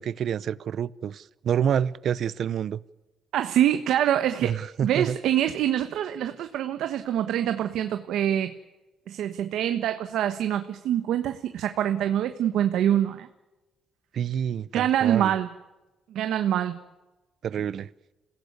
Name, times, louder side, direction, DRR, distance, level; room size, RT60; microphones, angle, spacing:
voice 1, 0.0-2.8 4.4-5.2 14.1-15.3 17.4-17.9, right 8 dB, 60° right, 19 dB, 0.8 m, -28 dB
voice 2, 3.3-4.5 4.8-8.5 9.1-13.3 14.7-15.5 16.1-16.8, right 11 dB, 85° right, 8 dB, 1.3 m, -25 dB
27.0 x 17.0 x 9.7 m, 1.1 s
cardioid pair, 110°, 0 cm